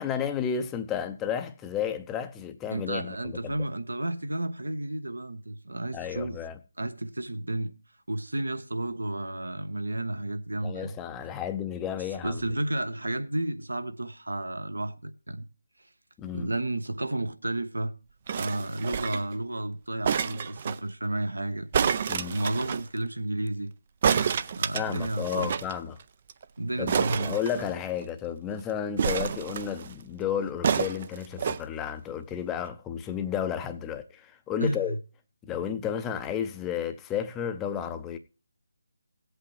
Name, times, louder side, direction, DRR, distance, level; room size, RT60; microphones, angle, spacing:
voice 1, 0.0-3.2 3.4-3.5 5.9-6.6 10.6-12.4 16.2-16.5 22.1-22.4 24.7-26.0 26.8-35.0 35.4-38.2, left 8 dB, 10° left, 0.7 m, -32 dB
voice 2, 2.7-6.4 6.8-7.7 8.1-11.0 12.2-15.5 16.3-17.9 18.3-21.7 22.3-23.7 24.3-25.6 26.6-27.3 34.6-35.0, right 1 dB, 75° right, 1.1 m, -32 dB
sound 1, 18.3-19.3 20.0-20.8 21.7-22.8 24.0-25.7 26.0-26.1 26.3-26.4 26.9-28.0 29.0-29.9 30.6-31.6 32.3-32.4, right 7 dB, 35° right, 0.5 m, -28 dB
17.0 x 8.2 x 3.2 m
figure-of-eight pair, 155°, 0 cm